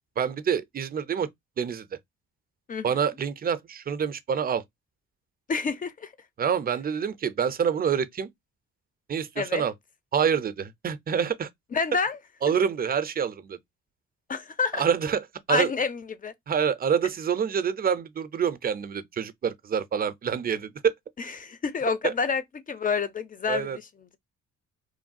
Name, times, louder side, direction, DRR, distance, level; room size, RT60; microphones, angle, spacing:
voice 1, 0.2-1.3 1.6-1.9 2.8-4.6 6.4-8.3 9.1-9.7 10.1-11.5 12.4-13.6 14.7-15.7 16.5-20.9 22.0-22.1 23.5-23.8, right 7 dB, 30° right, 0.4 m, -27 dB
voice 2, 5.5-6.1 9.4-9.6 11.7-12.5 14.3-14.8 15.5-16.3 21.4-22.4 22.7-23.7, left 5 dB, 30° left, 0.5 m, -28 dB
3.1 x 2.2 x 2.5 m
cardioid pair, 90°, 30 cm